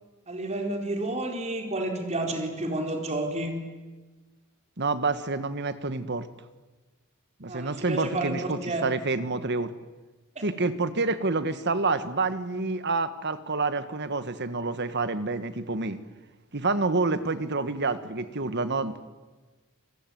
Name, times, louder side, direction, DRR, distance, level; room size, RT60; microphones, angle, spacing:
voice 1, 0.3-3.6 7.5-8.3 8.6-8.9 10.4-10.5, right 2 dB, 30° right, 3 dB, 4.2 m, -30 dB
voice 2, 4.8-6.3 7.4-9.7 10.4-16.0 16.5-19.1, right 3 dB, 50° right, 12 dB, 1.6 m, -28 dB
28.5 x 20.0 x 9.4 m, 1.2 s
head